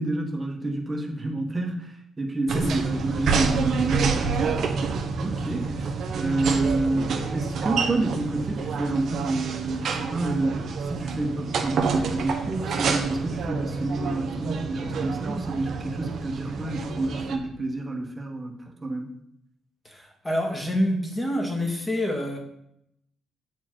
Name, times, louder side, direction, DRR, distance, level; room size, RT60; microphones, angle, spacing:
voice 1, 0.0-4.8 5.2-19.2, right 2 dB, 25° right, 1 dB, 1.4 m, -29 dB
sound 1, 2.5-17.4, right 5 dB, 65° right, 1.0 m, -28 dB
voice 2, 19.8-22.4, left 1 dB, 15° left, 1 dB, 1.7 m, -27 dB
8.2 x 4.5 x 4.6 m, 0.75 s
cardioid pair, 90°, 0 cm